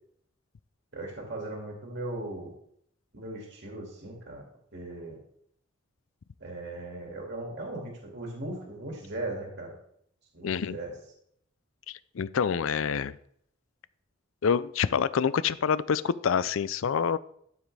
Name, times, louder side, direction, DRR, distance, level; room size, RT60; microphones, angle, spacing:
voice 1, 0.9-2.5 3.1-4.4 4.7-5.2 6.4-9.7 10.3-10.9, right 2 dB, 60° right, -1 dB, 2.2 m, -38 dB
voice 2, 10.4-10.8 11.9-13.2 14.4-17.2, left 6 dB, 75° left, 17 dB, 0.4 m, -27 dB
12.5 x 7.4 x 3.3 m, 0.69 s
head